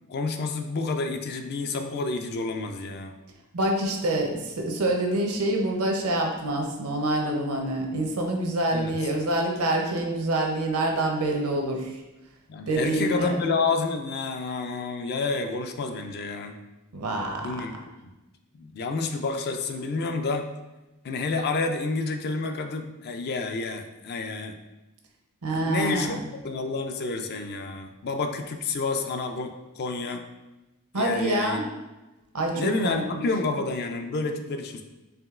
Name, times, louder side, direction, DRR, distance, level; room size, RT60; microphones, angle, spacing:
voice 1, 0.1-3.2 8.7-8.9 12.5-16.6 17.4-17.7 18.6-20.5 21.0-24.5 25.5-30.2 30.9-31.6 32.5-34.8, left 3 dB, 45° left, 6 dB, 0.3 m, -29 dB
voice 2, 3.5-11.9 12.7-13.4 16.9-17.4 25.4-26.2 30.9-31.6 32.3-33.3, right 1 dB, 80° right, 1 dB, 0.7 m, -26 dB
4.9 x 3.0 x 2.4 m, 1.0 s
head